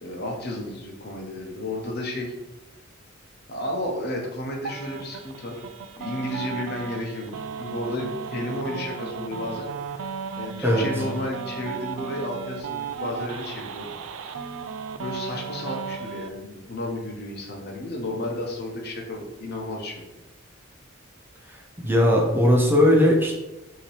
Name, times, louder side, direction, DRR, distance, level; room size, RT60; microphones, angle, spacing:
voice 1, 0.0-2.3 3.5-5.6 6.0-14.5 15.0-20.0, left 1 dB, 55° left, 0 dB, 0.9 m, -32 dB
sound 1, 4.6-16.3, right 6 dB, 85° right, 0.4 m, -35 dB
voice 2, 21.8-23.4, left 1 dB, 10° right, -1 dB, 0.7 m, -18 dB
5.5 x 2.9 x 3.3 m, 0.97 s
head